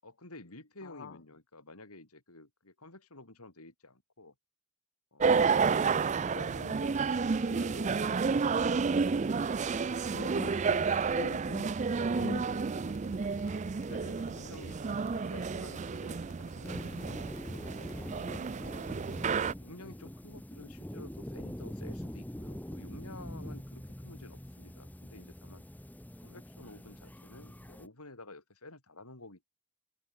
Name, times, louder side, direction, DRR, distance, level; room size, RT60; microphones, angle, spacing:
voice 1, 0.0-4.3 5.1-9.2 13.8-17.7 18.5-18.9 19.6-25.6 26.2-29.5, left 2 dB, 85° left, 5.9 m, -51 dB
voice 2, 0.8-1.2 10.1-11.7 12.1-13.3 14.1-14.2 18.6-19.6, left 5 dB, 55° left, 0.4 m, -46 dB
sound 1, 5.2-19.5, right 5 dB, 30° right, 0.4 m, -31 dB
sound 2, 6.8-18.0, left 4 dB, 70° left, 4.3 m, -57 dB
sound 3, 16.6-27.9, equal, 5° left, 0.9 m, -44 dB
open air
head